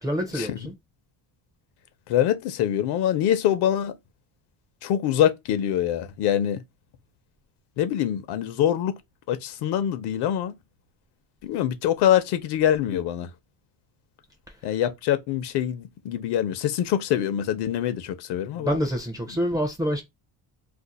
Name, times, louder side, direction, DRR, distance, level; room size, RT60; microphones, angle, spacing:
voice 1, 0.0-0.7 18.6-20.0, equal, 10° right, 0.4 m, -26 dB
voice 2, 2.1-3.9 4.8-6.6 7.8-9.0 9.3-10.6 11.4-13.3 14.6-18.8, left 10 dB, 65° left, 0.6 m, -24 dB
2.5 x 2.4 x 3.9 m
cardioid pair, 165°, 43 cm